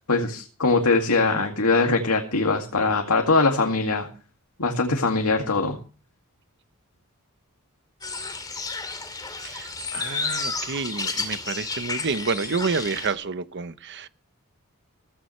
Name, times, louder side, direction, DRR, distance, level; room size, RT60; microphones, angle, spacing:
voice 1, 0.1-4.1 4.6-5.8, left 3 dB, 85° left, 2.2 m, -22 dB
sound 1, 8.0-13.1, left 4 dB, 20° left, 2.6 m, -31 dB
voice 2, 9.3-14.1, right 4 dB, 55° right, 0.9 m, -29 dB
16.0 x 15.5 x 3.2 m
head